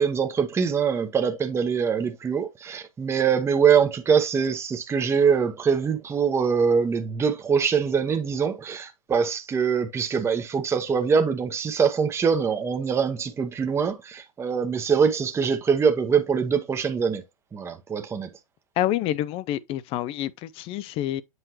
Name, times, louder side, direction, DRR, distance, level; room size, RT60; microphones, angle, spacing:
voice 1, 0.0-17.2 17.5-18.3, right 6 dB, 15° right, 0.9 m, -23 dB
voice 2, 18.8-21.2, left 13 dB, 30° left, 0.5 m, -27 dB
8.0 x 4.3 x 3.0 m
hypercardioid pair, 110°, 18 cm